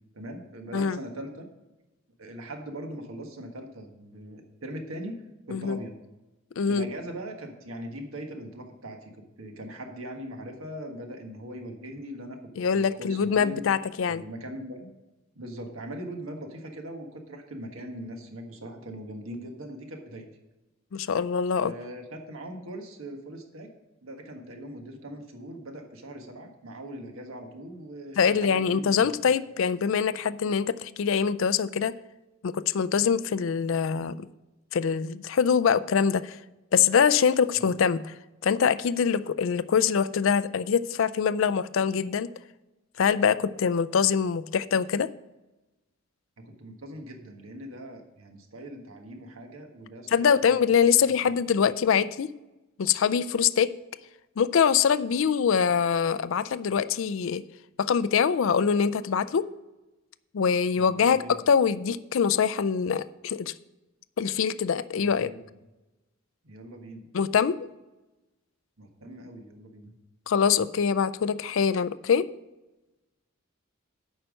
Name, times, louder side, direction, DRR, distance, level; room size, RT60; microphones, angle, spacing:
voice 1, 0.1-1.5 2.2-6.0 6.7-12.4 12.7-13.6 14.1-14.9 15.3-20.3 21.6-23.7 24.0-29.3 37.5-37.8 46.4-50.6 51.0-51.3 60.7-61.4 64.9-65.4 66.4-67.1 68.8-69.9, right 1 dB, 70° right, 4 dB, 1.5 m, -41 dB
voice 2, 6.6-6.9 12.6-14.2 20.9-21.7 28.2-31.9 32.4-34.3 34.7-36.4 36.7-38.1 38.4-42.3 43.0-45.1 50.1-52.3 52.8-53.7 54.4-57.4 57.8-59.5 60.3-63.5 64.2-65.3 67.1-67.7 70.3-72.3, left 6 dB, 60° left, 15 dB, 0.4 m, -24 dB
8.9 x 5.6 x 6.3 m, 1.1 s
head